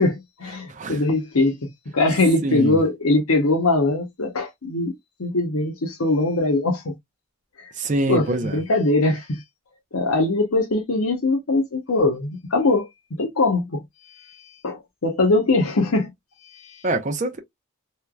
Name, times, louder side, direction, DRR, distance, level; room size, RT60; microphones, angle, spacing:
voice 1, 0.0-1.6 1.9-4.9 5.2-6.9 7.6-7.7 8.1-9.4 9.9-16.1 16.4-16.8, left 2 dB, 80° left, 0.9 m, -22 dB
voice 2, 2.4-2.8 7.8-8.6 16.8-17.4, right 2 dB, 35° right, 0.5 m, -24 dB
3.2 x 2.9 x 2.2 m
head